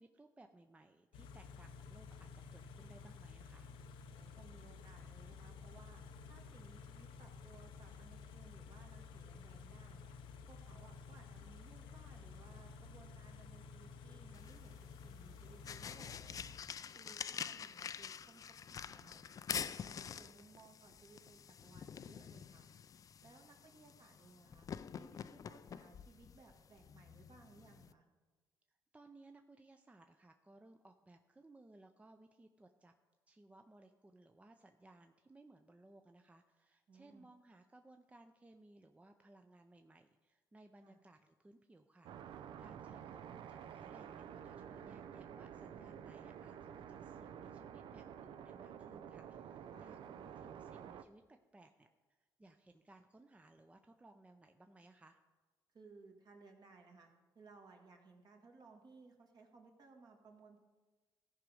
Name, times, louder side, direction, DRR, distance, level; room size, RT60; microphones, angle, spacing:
voice 1, 0.0-3.7 28.7-32.9 33.3-55.2, right 2 dB, 15° right, 6 dB, 0.5 m, -62 dB
Car / Idling, 1.1-16.6, left 5 dB, 85° left, 0.6 m, -53 dB
voice 2, 4.1-6.0 6.3-10.1 10.5-16.5 17.0-18.4 18.7-19.2 19.6-22.7 23.2-24.7 24.9-28.0 36.9-37.3 40.8-41.0 49.7-49.9 55.7-57.1 57.4-60.6, right 4 dB, 50° right, 2 dB, 1.8 m, -62 dB
sound 1, 14.3-27.9, left 7 dB, 45° left, 0.3 m, -47 dB
sound 2, 42.0-51.0, right 8 dB, 70° right, 0.5 m, -50 dB
14.5 x 5.1 x 4.9 m, 1.3 s
cardioid pair, 80°, 8 cm